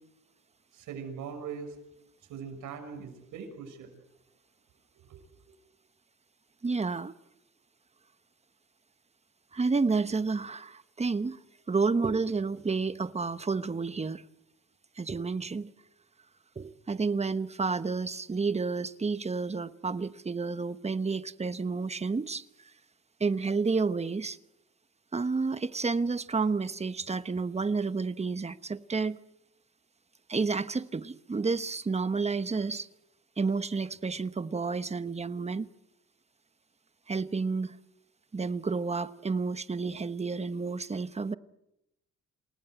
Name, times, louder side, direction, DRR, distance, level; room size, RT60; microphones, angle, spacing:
voice 1, 0.7-1.8 2.3-3.9 5.1-5.2 5.4-5.5, right 6 dB, 85° right, 6.3 m, -41 dB
voice 2, 6.6-7.1 9.5-11.4 11.7-14.2 15.0-15.7 16.6-22.4 23.2-24.4 25.1-29.2 30.3-32.9 33.4-35.7 37.1-37.7 38.3-41.3, right 4 dB, 20° right, 1.1 m, -30 dB
28.5 x 19.0 x 8.0 m
cardioid pair, 90°, 30 cm